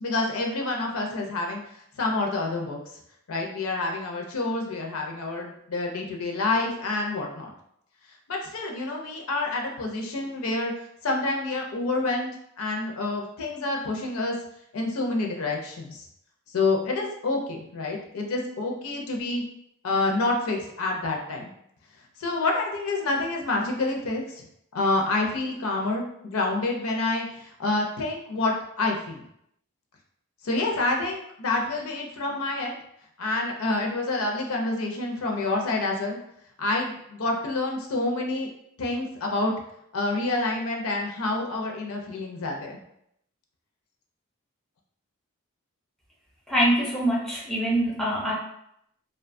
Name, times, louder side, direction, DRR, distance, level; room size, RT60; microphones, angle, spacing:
voice 1, 0.0-1.6 2.0-2.8 3.3-7.5 8.3-10.7 11.0-14.3 14.7-16.1 16.5-19.4 19.8-21.5 22.2-24.4 24.7-29.2 30.4-32.8 33.2-36.2 36.6-38.5 38.8-39.5 39.9-42.8, left 2 dB, 80° left, 1 dB, 0.5 m, -28 dB
voice 2, 46.5-48.3, right 1 dB, ahead, -5 dB, 0.5 m, -24 dB
2.6 x 2.2 x 2.5 m, 0.74 s
head